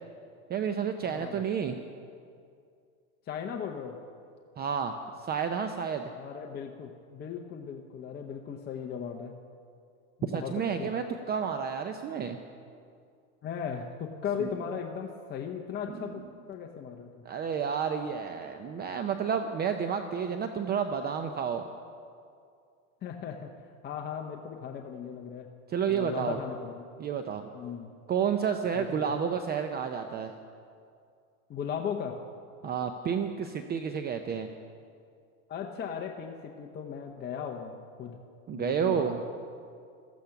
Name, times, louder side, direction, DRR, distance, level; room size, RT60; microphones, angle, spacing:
voice 1, 0.5-1.8 4.6-4.9 5.3-6.1 10.2-12.4 14.4-14.5 17.2-21.6 25.7-26.4 27.0-27.5 28.1-30.3 32.6-34.5 38.5-39.2, right 7 dB, 25° right, 7 dB, 0.6 m, -30 dB
voice 2, 1.0-1.4 3.3-4.0 6.1-9.4 10.2-10.9 13.4-17.3 23.0-23.5 23.8-25.5 25.9-26.9 27.5-27.9 28.7-29.1 31.5-32.2 35.5-38.2 38.5-39.1, left 7 dB, 25° left, 2 dB, 0.9 m, -37 dB
15.5 x 13.5 x 5.9 m, 2.3 s
supercardioid pair, 125°, 41 cm